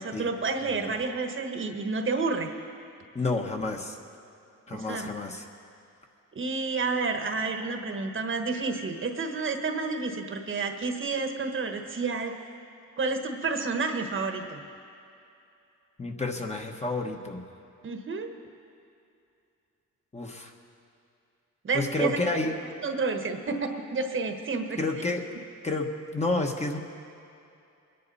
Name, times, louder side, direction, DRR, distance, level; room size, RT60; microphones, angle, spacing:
voice 1, 0.0-2.5 4.7-5.1 6.3-12.4 13.0-14.6 17.8-18.3 21.6-24.8, right 4 dB, 40° right, 5 dB, 1.3 m, -30 dB
voice 2, 3.1-4.0 4.7-5.4 16.0-17.4 20.1-20.5 21.7-22.5 24.8-25.2 25.6-26.8, left 2 dB, 20° left, 2 dB, 1.3 m, -30 dB
22.0 x 10.5 x 4.2 m, 2.6 s
cardioid pair, 90°, 30 cm